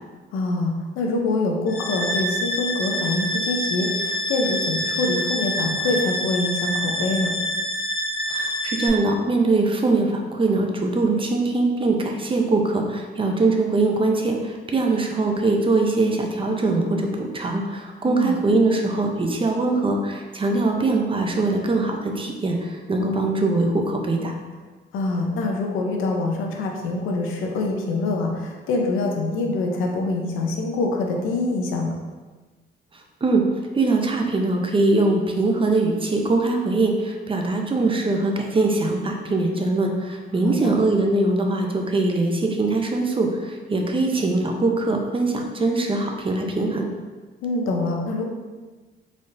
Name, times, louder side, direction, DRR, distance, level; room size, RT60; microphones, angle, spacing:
voice 1, 0.3-7.3 18.1-18.4 23.0-23.3 24.9-31.9 40.4-40.7 47.4-48.2, left 2 dB, 90° left, 1 dB, 0.6 m, -25 dB
sound 1, 1.7-8.9, equal, 50° left, 1.2 m, -26 dB
voice 2, 8.3-24.3 32.9-33.4 33.7-46.9, right 2 dB, 25° right, 2 dB, 0.6 m, -22 dB
4.1 x 3.4 x 2.6 m, 1.3 s
cardioid pair, 90°, 20 cm